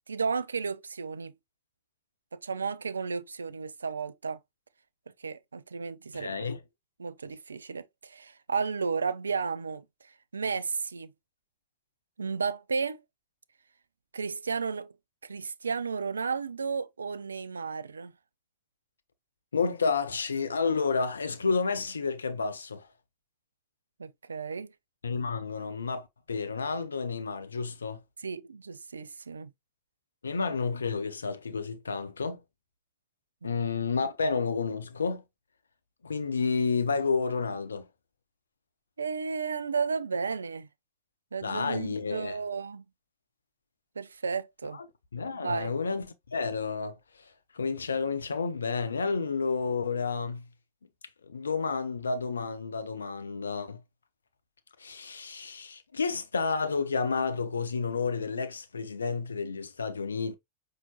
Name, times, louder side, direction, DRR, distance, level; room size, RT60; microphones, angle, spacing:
voice 1, 0.1-1.3 2.3-4.4 5.2-6.5 7.0-9.8 10.3-11.1 12.2-13.0 14.1-14.9 15.2-18.1 24.0-24.7 28.2-29.5 33.4-33.5 39.0-40.7 41.3-42.8 44.0-44.8 45.3-45.7, right 5 dB, 75° right, 0.3 m, -33 dB
voice 2, 6.1-6.6 19.5-22.9 25.0-28.0 30.2-32.4 33.4-35.2 36.0-37.9 41.4-42.4 45.1-50.5 51.2-53.8 54.8-60.3, left 4 dB, 75° left, 0.6 m, -30 dB
5.6 x 2.8 x 2.8 m
figure-of-eight pair, 90°, 0 cm